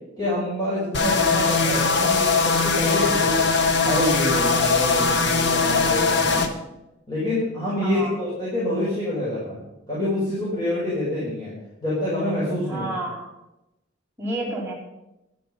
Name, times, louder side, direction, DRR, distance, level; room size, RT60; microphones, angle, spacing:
voice 1, 0.2-3.6 3.9-6.5 7.1-9.6 9.9-11.5 11.8-12.9, left 1 dB, 20° left, -9 dB, 5.5 m, -26 dB
sound 1, 0.9-6.5, left 4 dB, 65° left, 1.3 m, -20 dB
voice 2, 7.8-8.1 12.7-13.3 14.2-14.7, right 1 dB, 10° right, -4 dB, 4.0 m, -30 dB
12.0 x 10.5 x 5.7 m, 0.93 s
head